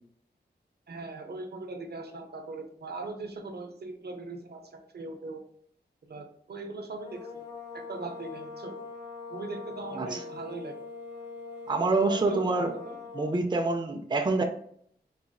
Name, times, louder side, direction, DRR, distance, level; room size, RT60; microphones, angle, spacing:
voice 1, 0.9-5.4 6.1-7.3 7.7-8.8 9.3-10.8 12.0-13.0, right 3 dB, 65° right, 5 dB, 0.7 m, -40 dB
sound 1, 6.9-13.5, left 4 dB, 25° left, 1.1 m, -42 dB
voice 2, 11.7-12.7 13.1-14.4, right 3 dB, 25° right, 4 dB, 0.4 m, -26 dB
4.1 x 2.5 x 2.3 m, 0.65 s
wide cardioid pair, 80°, 18 cm